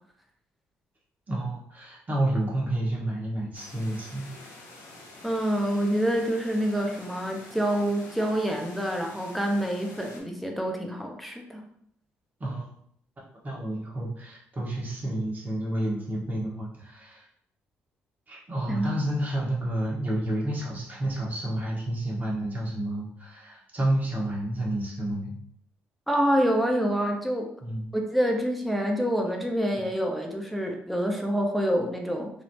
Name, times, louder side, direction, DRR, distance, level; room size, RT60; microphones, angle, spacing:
voice 1, 1.3-4.3 12.4-12.6 13.4-17.3 18.3-25.3 27.6-27.8, right 1 dB, 35° right, -3 dB, 1.2 m, -30 dB
sound 1, 3.5-10.2, left 2 dB, 80° left, 0.6 m, -47 dB
voice 2, 5.2-11.6 18.7-18.9 26.1-27.5 27.9-32.3, equal, ahead, 1 dB, 0.5 m, -27 dB
3.1 x 2.0 x 2.7 m, 0.69 s
supercardioid pair, 60°, 5 cm